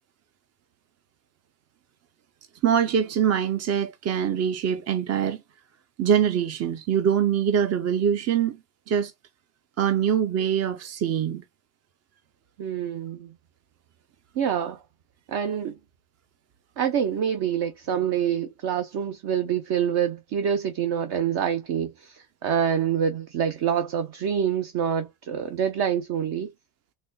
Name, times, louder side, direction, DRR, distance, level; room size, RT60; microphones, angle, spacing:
voice 1, 2.6-5.4 6.0-8.6 8.9-9.1 9.8-11.4, right 8 dB, 35° right, 0.5 m, -23 dB
voice 2, 12.6-13.3 14.3-14.8 15.3-15.8 16.8-26.5, right 8 dB, 55° right, 0.8 m, -26 dB
4.1 x 3.2 x 2.2 m
supercardioid pair, 95°, 48 cm